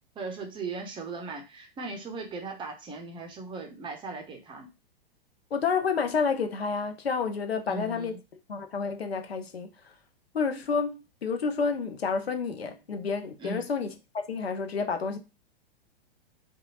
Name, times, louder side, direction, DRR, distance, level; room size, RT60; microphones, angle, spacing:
voice 1, 0.2-4.7 7.7-8.2 13.4-13.6, right 3 dB, 15° right, 0.6 m, -38 dB
voice 2, 5.5-8.1 8.5-9.9 10.3-15.2, left 5 dB, 85° left, 0.6 m, -30 dB
2.7 x 2.3 x 2.8 m
figure-of-eight pair, 105°, 30 cm